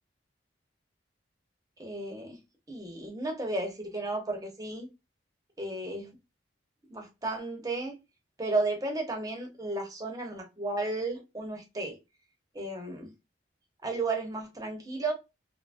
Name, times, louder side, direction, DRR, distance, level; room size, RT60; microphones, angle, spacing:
voice 1, 1.8-2.4 2.7-4.9 5.6-6.1 6.9-8.0 8.4-12.0 12.5-13.1 13.8-15.1, right 2 dB, 20° right, 2 dB, 0.8 m, -33 dB
2.7 x 2.5 x 2.5 m, 0.24 s
head